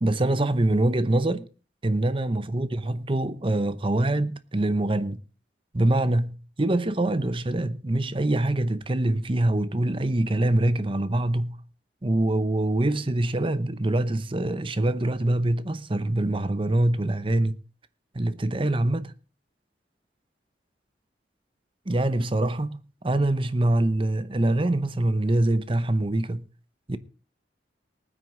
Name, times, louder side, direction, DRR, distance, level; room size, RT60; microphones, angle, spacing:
voice 1, 0.0-1.5 1.8-5.2 5.7-11.6 12.0-17.6 18.1-19.1 21.9-22.8 23.0-26.4 26.9-27.0, right 1 dB, 30° right, 0.8 m, -24 dB
19.0 x 9.5 x 3.8 m
head